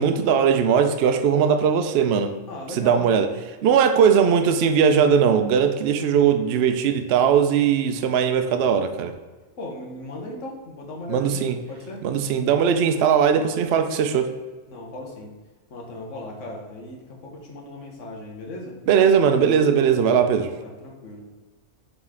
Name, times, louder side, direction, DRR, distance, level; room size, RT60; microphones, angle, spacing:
voice 1, 0.0-2.3 2.7-3.3 3.6-9.1 11.1-11.6 12.0-14.3 18.9-20.5, right 7 dB, 60° right, 7 dB, 0.7 m, -19 dB
voice 2, 2.5-3.1 9.6-12.1 14.7-15.3 15.7-18.8 20.6-21.2, left 1 dB, 60° left, -1 dB, 1.5 m, -37 dB
7.5 x 4.0 x 3.7 m, 1.3 s
omnidirectional pair, 1.5 m